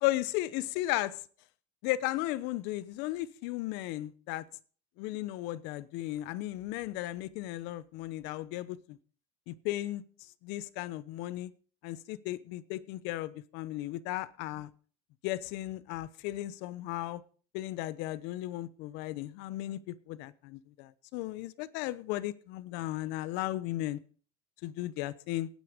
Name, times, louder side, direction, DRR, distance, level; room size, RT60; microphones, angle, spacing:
voice 1, 0.0-1.2 1.8-4.4 5.0-9.0 9.5-10.0 10.4-11.5 11.8-14.7 15.2-17.2 17.5-24.0 24.6-25.5, left 16 dB, 70° left, 18 dB, 0.9 m, -35 dB
17.5 x 9.5 x 5.2 m, 0.43 s
cardioid pair, 160°, 18 cm